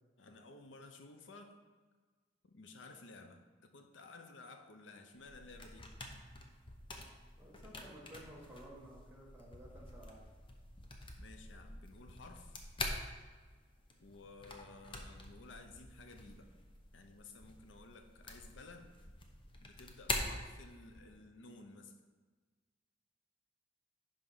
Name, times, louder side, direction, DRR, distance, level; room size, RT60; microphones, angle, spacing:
voice 1, 0.2-1.6 2.4-5.9 11.2-12.6 14.0-16.5 16.9-18.9 19.6-22.0, left 3 dB, 80° left, 6 dB, 0.7 m, -55 dB
sound 1, 5.2-21.1, left 2 dB, 30° left, 0.8 m, -46 dB
voice 2, 7.4-10.2, right 1 dB, 10° right, -4 dB, 1.6 m, -54 dB
10.5 x 3.5 x 5.6 m, 1.4 s
head